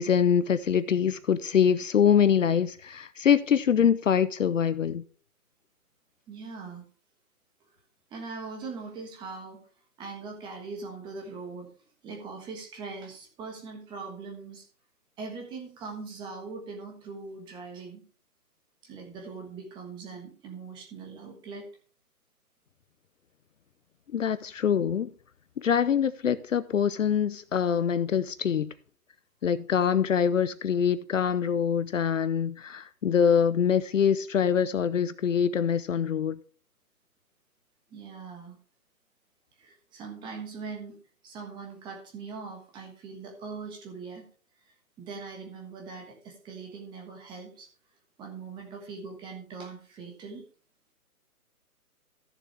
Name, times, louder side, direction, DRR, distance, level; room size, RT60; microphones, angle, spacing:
voice 1, 0.0-5.0 24.1-25.1 25.6-28.7 29.4-36.4, left 8 dB, 55° left, 0.7 m, -24 dB
voice 2, 6.3-6.9 8.1-9.6 10.0-11.7 12.0-14.7 15.2-18.0 18.8-21.7 37.9-38.6 39.6-41.0 41.2-44.3 45.0-47.7 48.2-50.4, right 4 dB, 10° right, 1.4 m, -41 dB
14.5 x 6.8 x 3.4 m
hypercardioid pair, 150°, 46 cm